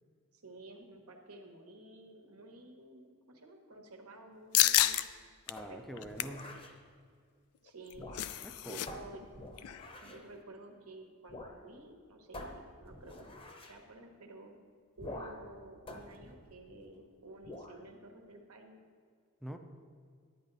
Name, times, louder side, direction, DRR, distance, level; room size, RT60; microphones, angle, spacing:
voice 1, 0.3-5.1 5.6-6.4 7.6-8.1 8.6-9.2 10.0-13.3 13.7-14.6 15.0-18.8, right 2 dB, 75° right, 3 dB, 1.2 m, -52 dB
sound 1, 4.5-5.0 5.5-5.6 6.0-6.4 7.7-8.9 9.1-9.3 9.6-9.9, left 13 dB, 70° left, 0.4 m, -29 dB
voice 2, 5.5-6.4 8.4-9.0 19.4-19.6, equal, ahead, 5 dB, 0.5 m, -45 dB
sound 2, 5.6-6.8 7.9-8.5 8.9-10.3 11.3-11.6 11.9-12.0 12.3-13.8 15.0-15.5 15.9-17.0 17.4-17.8, left 1 dB, 25° left, 0.8 m, -48 dB
10.5 x 9.3 x 4.1 m, 2.1 s
head